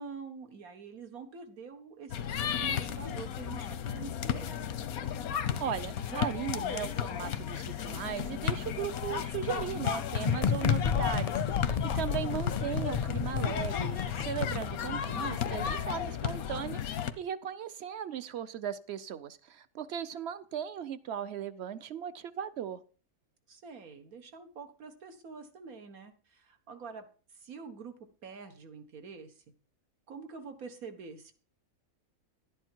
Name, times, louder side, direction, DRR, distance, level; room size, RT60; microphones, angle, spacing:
voice 1, 0.0-4.7 23.5-27.1 27.3-28.0 28.2-29.4 30.1-31.3, right 5 dB, 85° right, 7 dB, 1.9 m, -46 dB
sound 1, 2.1-17.1, left 9 dB, 85° left, 1.3 m, -34 dB
voice 2, 5.6-22.8, right 9 dB, 55° right, 14 dB, 1.0 m, -37 dB
sound 2, 10.2-15.7, left 6 dB, 45° left, 0.5 m, -33 dB
11.5 x 10.0 x 4.6 m, 0.38 s
omnidirectional pair, 1.5 m